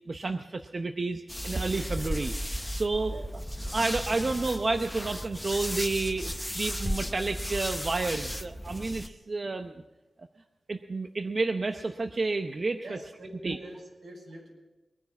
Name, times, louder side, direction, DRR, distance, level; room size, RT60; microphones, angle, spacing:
voice 1, 0.1-2.3 2.8-3.1 3.7-9.7 10.7-13.0 13.4-13.6, right 3 dB, 45° right, 6 dB, 0.7 m, -30 dB
sound 1, 1.3-9.1, equal, 5° left, 0.7 m, -35 dB
voice 2, 12.8-14.5, right 1 dB, 85° right, -1 dB, 5.9 m, -44 dB
21.5 x 10.0 x 5.9 m, 1.1 s
wide cardioid pair, 90°, 0 cm